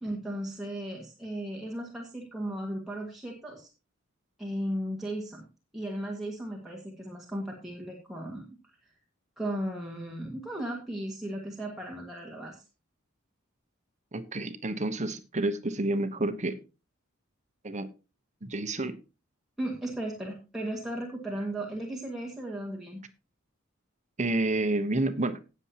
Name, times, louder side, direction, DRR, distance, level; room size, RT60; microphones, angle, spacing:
voice 1, 0.0-3.7 4.4-5.4 5.7-8.5 9.4-12.6 19.6-23.0, right 1 dB, ahead, -2 dB, 1.9 m, -36 dB
voice 2, 14.1-16.6 17.6-17.9 18.4-19.0 24.2-25.4, right 2 dB, 35° right, 11 dB, 1.0 m, -29 dB
18.0 x 7.1 x 2.9 m, 0.31 s
head